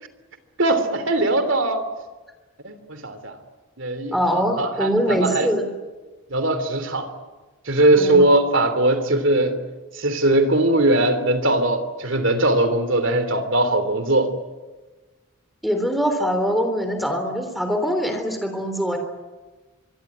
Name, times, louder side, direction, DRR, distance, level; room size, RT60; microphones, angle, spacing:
voice 1, 0.6-1.8 2.6-3.3 3.8-4.2 4.6-5.5 6.3-7.1 7.7-9.6 10.0-14.3, right 1 dB, 60° right, 10 dB, 3.3 m, -20 dB
voice 2, 4.1-5.7 7.9-8.3 15.6-19.0, equal, ahead, 6 dB, 3.4 m, -23 dB
25.0 x 23.5 x 10.0 m, 1.2 s
head